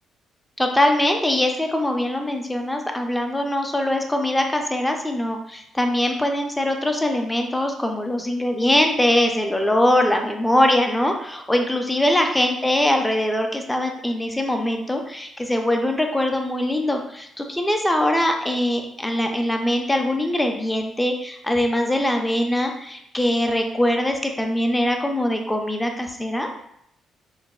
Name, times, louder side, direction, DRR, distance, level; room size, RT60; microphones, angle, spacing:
voice 1, 0.6-26.5, left 1 dB, 10° left, 3 dB, 0.4 m, -22 dB
3.8 x 2.0 x 2.2 m, 0.74 s
cardioid pair, 90°, 0 cm